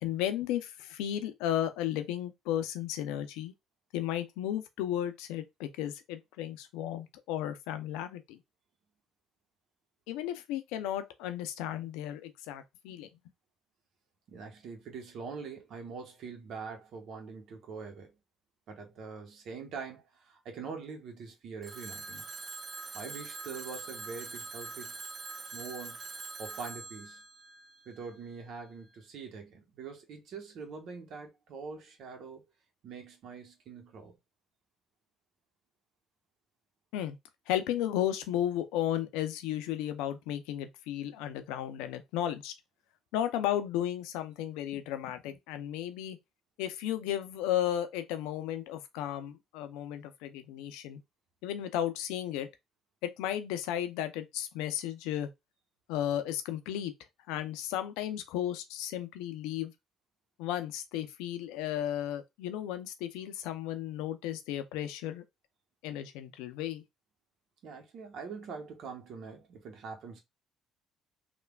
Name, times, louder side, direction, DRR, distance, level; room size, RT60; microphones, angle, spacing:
voice 1, 0.0-3.5 3.9-8.4 10.1-13.1 36.9-37.2 37.5-42.5 43.1-46.2 46.6-51.0 51.4-52.5 53.0-55.3 55.9-56.9 57.3-59.7 60.4-65.2 65.8-66.8, left 11 dB, 80° left, 0.4 m, -34 dB
voice 2, 14.3-18.1 18.7-22.3 22.9-25.0 25.5-26.0 26.4-27.2 27.9-32.4 32.8-34.2 67.6-70.2, right 5 dB, 65° right, 0.8 m, -44 dB
Telephone, 21.6-28.4, right 4 dB, 40° right, 0.5 m, -44 dB
3.2 x 2.2 x 2.3 m
supercardioid pair, 65°, 0 cm